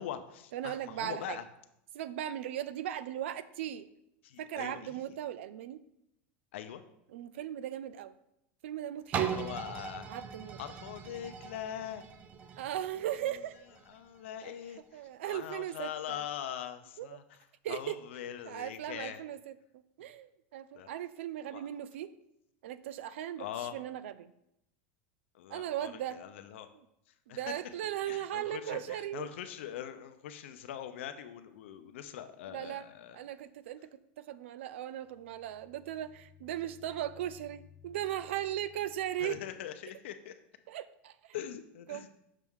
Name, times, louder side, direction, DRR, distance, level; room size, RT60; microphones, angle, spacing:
voice 1, 0.0-1.5 4.2-5.2 6.5-6.8 9.2-10.1 10.6-12.0 13.0-13.4 13.8-19.2 20.0-20.1 20.7-20.9 21.4-21.7 23.4-23.8 25.3-26.7 27.3-27.6 28.1-33.2 39.2-40.4 41.3-42.1, left 10 dB, 80° left, 9 dB, 0.7 m, -42 dB
voice 2, 0.5-1.4 1.9-3.9 4.4-5.8 7.1-8.1 8.6-9.3 10.1-10.6 12.6-13.5 14.4-14.5 14.9-16.2 17.0-17.1 17.6-18.0 18.4-22.1 22.6-23.4 23.7-24.3 25.5-26.2 27.3-29.2 32.5-32.8 33.1-33.9 34.2-39.4 40.7-41.3 41.9-42.1, right 11 dB, 85° right, 16 dB, 0.4 m, -38 dB
sound 1, 9.1-14.9 15.4-15.5, right 8 dB, 25° right, 0.4 m, -39 dB
sound 2, 35.0-39.8, left 9 dB, 50° left, 0.8 m, -59 dB
6.7 x 6.1 x 3.6 m, 0.81 s
supercardioid pair, 165°, 6 cm